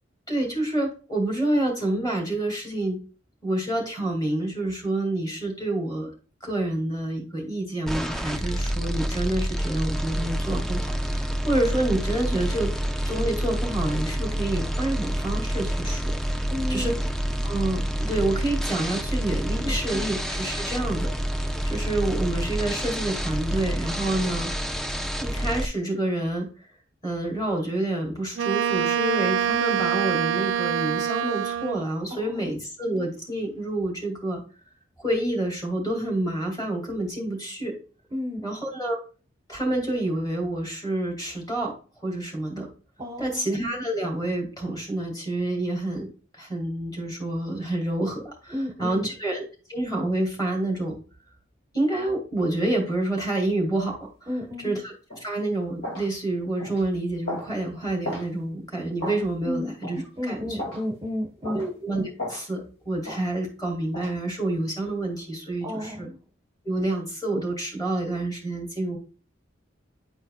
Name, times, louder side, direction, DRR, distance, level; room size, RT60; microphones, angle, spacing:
voice 1, 0.3-3.0 3.4-6.1 6.4-12.7 13.0-16.2 16.7-16.9 17.4-24.5 25.2-26.7 27.0-34.4 35.0-37.7 38.4-39.0 39.5-41.7 42.0-42.7 43.2-49.4 49.7-51.0 51.7-60.6 61.4-66.1 66.6-69.0, right 1 dB, 20° left, -1 dB, 2.3 m, -28 dB
sound 1, 7.9-25.7, equal, ahead, 0.3 m, -28 dB
voice 2, 16.5-16.9 19.6-20.0 32.1-32.5 38.1-38.5 43.0-43.4 48.5-49.1 54.3-54.7 59.4-59.7 60.2-61.6 65.6-66.2, left 1 dB, 20° right, 2 dB, 0.8 m, -32 dB
Wind instrument woodwind instrument, 28.4-31.9, right 9 dB, 80° right, 0.3 m, -25 dB
sound 2, 55.1-55.3 55.8-56.1 56.6-56.8 57.3-57.5 58.0-58.3 59.0-59.2 59.8-60.0 60.6-60.8 61.4-61.7 62.2-62.4 63.0-63.2 63.9-64.1, left 1 dB, 85° left, 2.2 m, -34 dB
9.4 x 4.4 x 2.3 m, 0.36 s
head